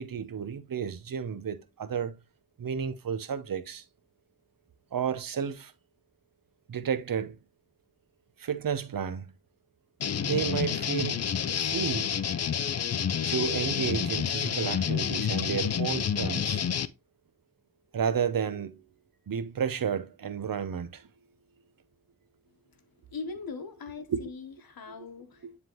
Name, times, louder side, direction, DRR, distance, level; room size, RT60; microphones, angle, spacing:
voice 1, 0.0-2.2 2.6-3.8 4.9-5.7 6.7-7.4 8.4-9.3 10.2-11.2 11.6-12.1 13.3-16.6 17.9-18.8 19.3-21.0 24.1-24.3 24.9-25.0 25.4-25.6, right 7 dB, 70° right, 0.8 m, -32 dB
sound 1, 10.0-16.9, left 8 dB, 45° left, 0.5 m, -29 dB
voice 2, 23.1-25.6, left 4 dB, 85° left, 1.1 m, -40 dB
9.7 x 3.6 x 3.0 m
wide cardioid pair, 70°, 35 cm